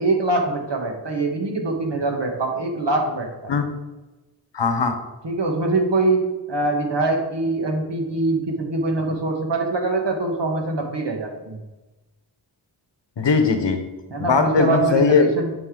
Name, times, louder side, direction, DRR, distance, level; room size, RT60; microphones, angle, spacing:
voice 1, 0.0-3.5 5.2-11.6 14.1-15.5, right 2 dB, 80° right, 2 dB, 1.6 m, -23 dB
voice 2, 4.5-4.9 13.2-13.8 14.2-15.3, left 5 dB, 85° left, 7 dB, 1.0 m, -19 dB
10.0 x 5.4 x 3.8 m, 1.1 s
wide cardioid pair, 80°, 42 cm